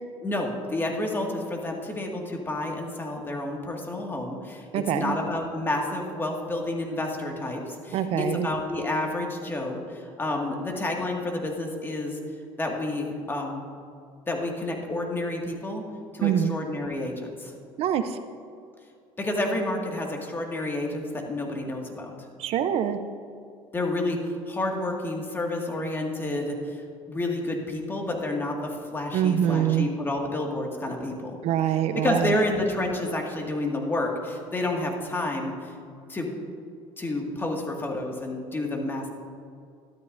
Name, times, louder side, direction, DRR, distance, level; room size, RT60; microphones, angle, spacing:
voice 1, 0.2-12.2 12.6-13.7 14.3-15.8 16.1-17.5 19.2-22.1 23.7-26.8 27.1-31.4 32.0-35.7 36.1-36.3 37.0-39.1, left 2 dB, 20° left, 0 dB, 1.9 m, -30 dB
voice 2, 4.7-5.2 7.9-8.5 16.2-16.5 17.8-18.2 22.4-23.0 29.1-29.9 31.4-32.4, right 10 dB, 60° right, 10 dB, 0.6 m, -24 dB
13.0 x 12.5 x 2.6 m, 2.3 s
cardioid pair, 105°, 11 cm